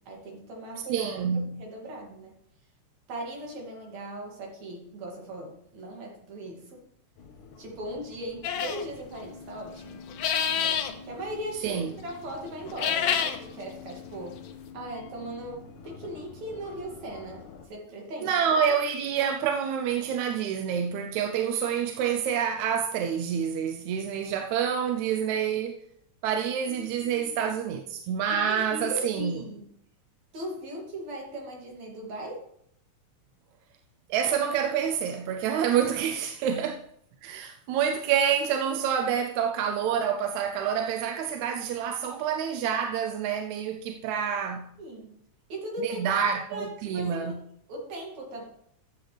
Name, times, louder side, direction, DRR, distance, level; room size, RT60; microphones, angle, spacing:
voice 1, 0.0-2.4 3.1-6.9 7.6-10.0 10.5-14.4 14.7-18.4 26.7-27.3 28.3-29.6 30.3-32.5 36.4-36.5 44.8-45.1 45.5-46.1 46.5-47.3 47.7-48.5, right 1 dB, 60° right, 3.6 m, -39 dB
voice 2, 0.9-1.5 11.6-12.0 18.2-25.8 26.2-29.4 34.1-36.8 37.2-44.7 45.8-47.4, right 8 dB, 75° right, 1.9 m, -27 dB
sound 1, 7.2-17.7, left 4 dB, 85° left, 2.9 m, -47 dB
sound 2, 8.4-8.8 10.1-10.9 12.7-13.4, left 8 dB, 70° left, 1.5 m, -27 dB
14.0 x 8.1 x 3.4 m
omnidirectional pair, 3.6 m